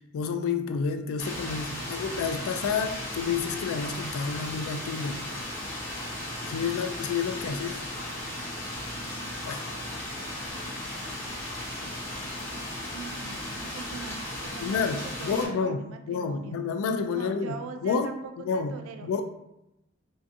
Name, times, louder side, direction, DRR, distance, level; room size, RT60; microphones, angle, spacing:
voice 1, 0.1-5.2 6.5-7.8 9.4-9.6 14.6-15.8 16.1-17.6 17.8-18.1 18.4-18.8 19.0-19.2, left 5 dB, 85° left, 8 dB, 0.3 m, -29 dB
sound 1, 1.2-15.5, left 1 dB, 65° left, 0.7 m, -36 dB
voice 2, 12.9-16.6 17.1-18.2 18.5-19.2, right 5 dB, 80° right, 6 dB, 0.3 m, -42 dB
2.5 x 2.5 x 2.5 m, 0.86 s
head